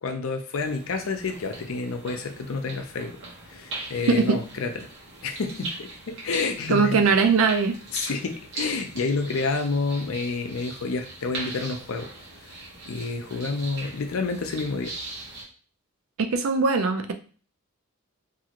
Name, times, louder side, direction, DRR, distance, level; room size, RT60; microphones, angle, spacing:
voice 1, 0.0-3.2 3.5-4.9 5.2-7.0 7.9-12.1 12.5-14.9, left 4 dB, 85° left, 5 dB, 0.5 m, -29 dB
sound 1, 0.6-15.4, right 2 dB, 60° right, 1.1 m, -40 dB
voice 2, 4.1-4.4 6.7-7.8 16.2-17.1, right 4 dB, 80° right, 7 dB, 0.4 m, -21 dB
2.7 x 2.5 x 2.8 m, 0.40 s
head